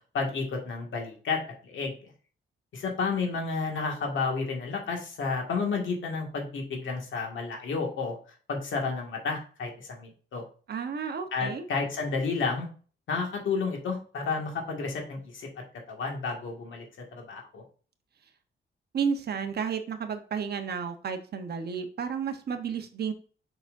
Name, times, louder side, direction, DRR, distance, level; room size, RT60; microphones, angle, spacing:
voice 1, 0.1-2.1 2.7-8.2 8.5-10.4 11.3-12.7 13.1-15.5 15.9-16.9 17.1-17.6, left 4 dB, 75° left, 1 dB, 2.0 m, -31 dB
voice 2, 10.7-11.7 18.9-23.1, right 6 dB, 55° right, 7 dB, 1.0 m, -32 dB
6.9 x 5.9 x 2.6 m, 0.39 s
cardioid pair, 130°, 20 cm